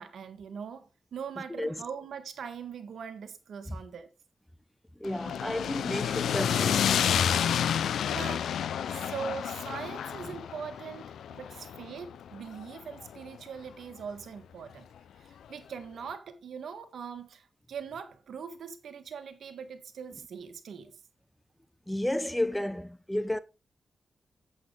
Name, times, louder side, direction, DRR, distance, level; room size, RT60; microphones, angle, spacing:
voice 1, 0.0-4.1 8.0-8.5 8.9-14.9 15.2-21.0, right 6 dB, 80° right, 1.6 m, -41 dB
voice 2, 1.5-1.8 5.0-7.5 21.9-23.4, left 1 dB, 10° left, 0.9 m, -32 dB
sound 1, 5.0-13.3, left 9 dB, 85° left, 0.5 m, -30 dB
8.7 x 7.9 x 3.8 m
cardioid pair, 50°, 0 cm